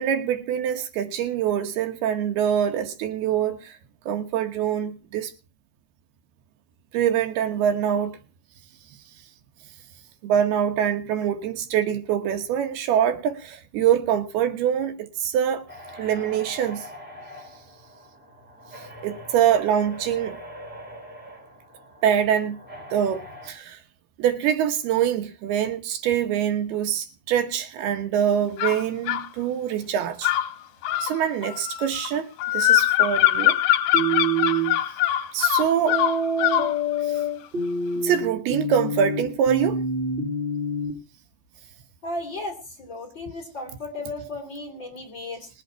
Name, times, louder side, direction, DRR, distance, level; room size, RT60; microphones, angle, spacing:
voice 1, 0.0-3.8 4.1-5.3 6.9-8.2 10.2-15.6 16.0-16.9 19.0-20.3 22.0-22.6 22.9-23.8 24.2-30.3 31.0-33.6 35.3-36.0 38.0-39.8, right 9 dB, 75° right, 3.0 m, -24 dB
sound 1, 15.7-23.5, equal, ahead, 4.0 m, -43 dB
sound 2, 28.6-29.3 30.2-36.7, left 13 dB, 80° left, 2.8 m, -22 dB
sound 3, 33.9-34.7 35.9-40.9, right 1 dB, 40° right, 0.8 m, -26 dB
voice 2, 42.0-45.5, left 2 dB, 30° left, 3.0 m, -35 dB
20.5 x 8.4 x 4.5 m
omnidirectional pair, 4.7 m